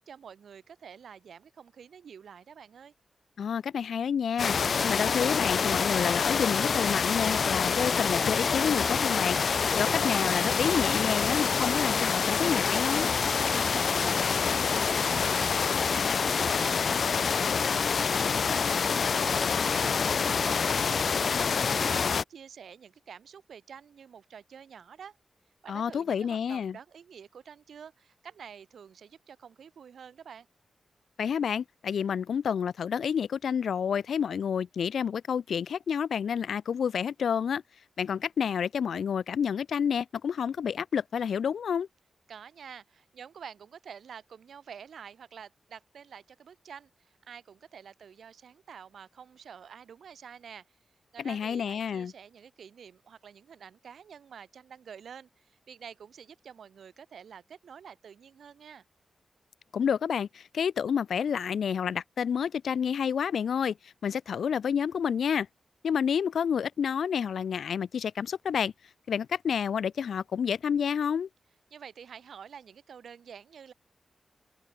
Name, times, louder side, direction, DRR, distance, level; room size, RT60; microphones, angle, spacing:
voice 1, 0.0-2.9 13.4-25.2 25.6-30.5 42.3-50.6 51.1-58.8 71.7-73.7, right 7 dB, 80° right, 5.3 m, -48 dB
voice 2, 3.4-9.4 9.8-13.1 25.7-26.8 31.2-37.6 38.0-41.9 51.2-52.1 59.7-63.8 64.0-65.5 65.8-68.7 69.1-71.3, left 7 dB, 85° left, 0.9 m, -29 dB
sound 1, 4.4-22.2, left 6 dB, 55° left, 0.7 m, -26 dB
open air
wide cardioid pair, 165°, 0 cm